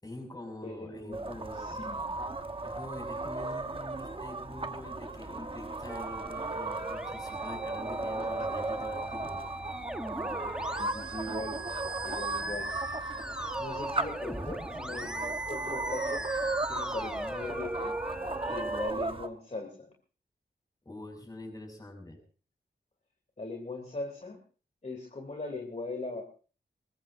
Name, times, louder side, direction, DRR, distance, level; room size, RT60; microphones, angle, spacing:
voice 1, 0.0-1.8 2.6-9.4 20.8-22.2, left 1 dB, 20° left, 2 dB, 6.2 m, -45 dB
voice 2, 0.6-1.3 1.6-2.2 10.8-11.6 12.0-13.0 13.6-16.2 16.7-18.0 18.5-19.9 23.4-24.4 24.8-26.2, left 2 dB, 35° left, 1 dB, 2.9 m, -40 dB
sound 1, 1.1-19.3, right 3 dB, 25° right, 1.1 m, -36 dB
Musical instrument, 5.9-18.9, right 1 dB, 5° right, 1.3 m, -39 dB
23.5 x 20.5 x 2.6 m, 0.38 s
wide cardioid pair, 110°, 19 cm